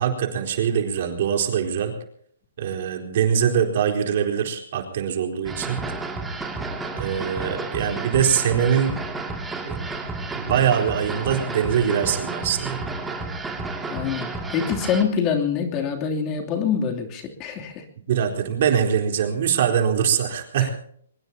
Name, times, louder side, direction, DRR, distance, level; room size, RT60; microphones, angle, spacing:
voice 1, 0.0-2.0 2.6-5.8 6.9-8.9 9.6-9.8 10.4-12.8 18.1-20.7, right 8 dB, 55° right, 3 dB, 4.1 m, -23 dB
sound 1, 5.4-15.0, right 3 dB, 10° right, 2.6 m, -31 dB
voice 2, 13.9-17.8 20.6-20.7, left 7 dB, 30° left, 2 dB, 3.0 m, -25 dB
23.0 x 21.5 x 2.9 m, 0.62 s
hypercardioid pair, 140°, 0 cm